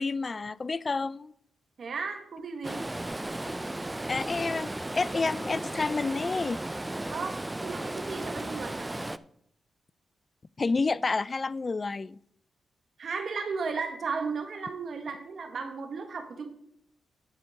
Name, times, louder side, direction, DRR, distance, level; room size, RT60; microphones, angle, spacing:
voice 1, 0.0-1.3 4.1-6.6 10.6-12.2, left 4 dB, 40° left, 0.4 m, -29 dB
voice 2, 1.8-2.8 7.1-8.9 13.0-16.5, right 5 dB, 65° right, 1.6 m, -35 dB
Stream, 2.6-9.2, right 1 dB, 15° right, 0.5 m, -35 dB
10.5 x 4.5 x 6.5 m
cardioid pair, 55°, 0 cm